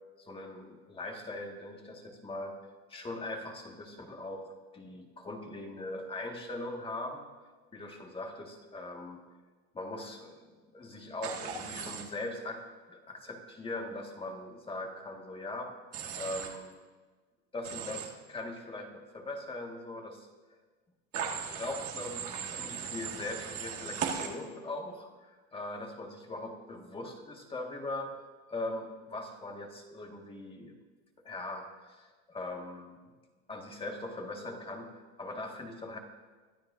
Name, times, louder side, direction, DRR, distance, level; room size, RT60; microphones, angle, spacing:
voice 1, 0.2-2.6 2.9-7.3 7.7-9.2 9.7-15.7 16.2-16.8 17.5-20.3 21.5-28.1 28.5-30.8 31.2-33.0 33.5-36.0, left 2 dB, 15° left, 2 dB, 1.7 m, -41 dB
Human voice / Train, 11.2-12.0 15.9-16.5 17.6-18.1 21.1-24.3, right 7 dB, 45° right, 1.9 m, -37 dB
22.5 x 12.0 x 2.6 m, 1.4 s
supercardioid pair, 135°, 34 cm